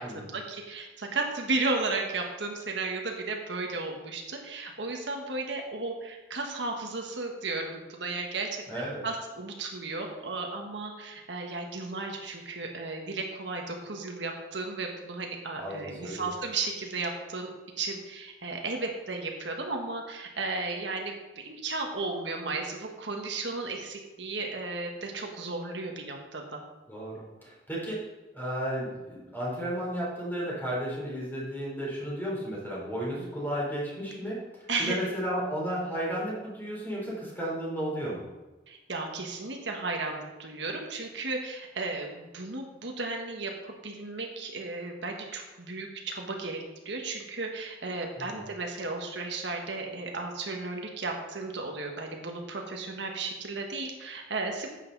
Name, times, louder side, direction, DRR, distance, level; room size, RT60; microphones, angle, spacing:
voice 1, 0.0-17.5 17.8-26.6 33.2-33.3 34.7-35.0 38.7-54.7, right 3 dB, 75° right, 2 dB, 1.5 m, -34 dB
voice 2, 8.7-9.0 15.6-16.3 26.9-28.0 28.3-34.4 34.8-38.2 48.2-48.5, equal, 10° left, -5 dB, 3.9 m, -33 dB
10.5 x 8.3 x 4.1 m, 1.1 s
head